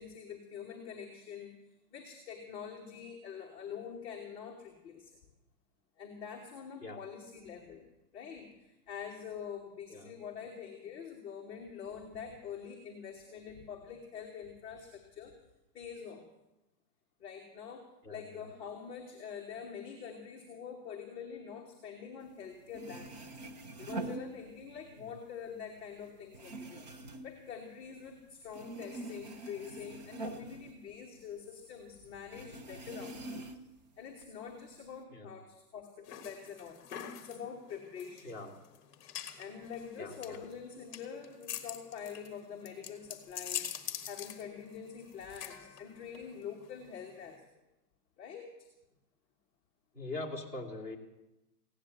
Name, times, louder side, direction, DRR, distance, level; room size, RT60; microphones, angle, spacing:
voice 1, 0.0-1.5 1.9-5.1 6.0-7.9 8.1-15.3 15.7-16.3 17.2-23.3 23.8-26.9 27.2-33.5 34.0-36.8 37.1-38.4 39.4-47.6 48.2-48.7, left 7 dB, 10° left, -5 dB, 1.1 m, -45 dB
voice 2, 18.0-18.5 25.0-25.1 35.1-35.3 38.2-38.5 40.0-40.4 49.9-51.0, left 2 dB, 5° right, -2 dB, 1.8 m, -42 dB
sound 1, 22.4-22.5 22.7-24.9 25.3-28.2 28.5-31.5 31.8-31.9 32.3-33.8 34.2-35.0, right 2 dB, 25° right, 0.6 m, -44 dB
sound 2, 36.1-47.4, left 10 dB, 30° left, 1.4 m, -45 dB
16.5 x 9.9 x 7.8 m, 0.97 s
hypercardioid pair, 165°, 48 cm